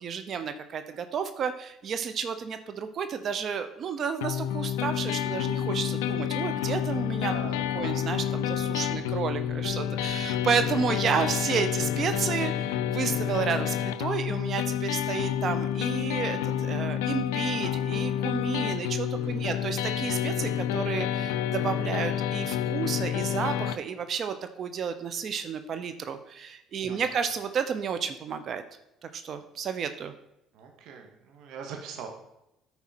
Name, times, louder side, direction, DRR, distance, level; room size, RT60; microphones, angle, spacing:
voice 1, 0.0-7.3 7.7-28.6 29.0-30.1, right 7 dB, 55° right, 9 dB, 0.8 m, -31 dB
sound 1, 4.2-23.8, left 10 dB, 90° left, 0.4 m, -29 dB
sound 2, 6.8-12.3, right 2 dB, 20° right, 1.8 m, -52 dB
voice 2, 7.2-7.9 19.1-19.7 26.8-27.2 30.5-32.1, right 6 dB, 70° right, 3 dB, 1.8 m, -43 dB
9.8 x 4.3 x 5.9 m, 0.85 s
supercardioid pair, 75°, 0 cm